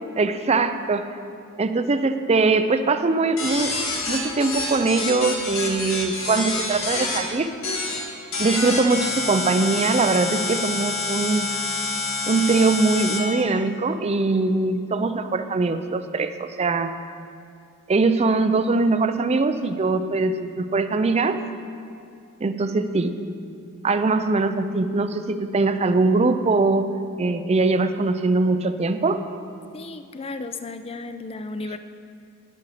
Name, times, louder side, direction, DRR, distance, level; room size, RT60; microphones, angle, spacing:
voice 1, 0.2-1.0 1.6-3.7 4.1-7.5 8.4-11.5 12.3-16.9 17.9-21.4 22.4-23.1 23.8-26.9 27.2-29.2, right 3 dB, 30° right, 10 dB, 0.4 m, -22 dB
sound 1, 3.4-7.2 7.6-8.0 8.3-13.2, left 3 dB, 65° left, 2.0 m, -27 dB
voice 2, 29.7-31.8, left 3 dB, 25° left, 9 dB, 0.4 m, -34 dB
11.0 x 8.5 x 4.9 m, 2.4 s
head